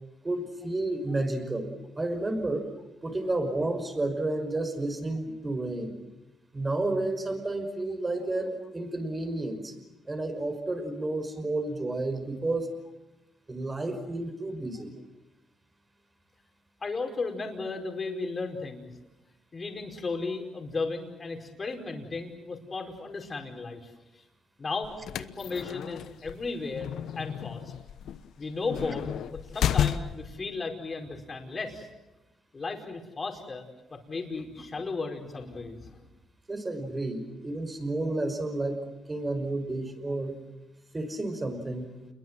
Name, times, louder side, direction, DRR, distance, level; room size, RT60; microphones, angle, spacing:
voice 1, 0.2-1.7 2.0-2.7 3.0-5.9 6.5-9.8 10.1-12.7 13.5-14.9 36.5-40.4 40.9-41.9, right 2 dB, 20° right, 7 dB, 5.6 m, -31 dB
voice 2, 16.8-18.9 19.5-24.2 24.6-24.9 25.2-26.9 27.1-27.7 28.4-31.9 32.5-33.6 33.9-36.0, left 3 dB, 35° left, 3 dB, 5.1 m, -35 dB
sound 1, 24.8-30.4, left 10 dB, 75° left, 1.0 m, -32 dB
28.5 x 22.5 x 7.7 m, 1.0 s
cardioid pair, 90°, 0 cm